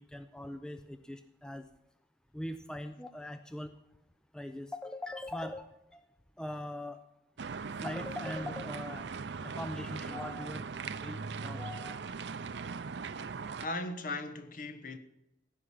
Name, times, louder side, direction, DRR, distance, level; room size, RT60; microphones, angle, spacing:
voice 1, 0.0-1.7 2.3-3.7 4.3-6.0 6.4-7.0 7.8-9.1 9.4-12.0, left 1 dB, 5° left, 0.5 m, -41 dB
sound 1, 7.4-13.7, right 5 dB, 80° right, 0.6 m, -39 dB
voice 2, 13.6-15.0, left 2 dB, 50° left, 1.1 m, -38 dB
16.5 x 5.9 x 10.0 m
head